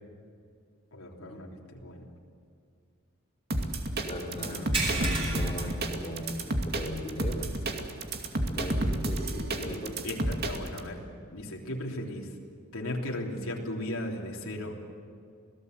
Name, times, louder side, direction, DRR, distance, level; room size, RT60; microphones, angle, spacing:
voice 1, 0.9-2.1 4.3-4.8 9.6-9.8 10.0-11.0 11.3-12.3 12.7-14.9, left 1 dB, 75° left, -1 dB, 3.4 m, -37 dB
sound 1, 3.5-10.8, right 1 dB, 50° right, 2.5 m, -30 dB
voice 2, 4.0-7.8 8.5-10.0, left 1 dB, 25° left, -2 dB, 3.5 m, -38 dB
sound 2, 4.7-6.6 7.0-7.2 7.6-7.7 9.4-9.5, right 2 dB, 25° right, 6.4 m, -33 dB
27.0 x 18.0 x 8.1 m, 2.4 s
head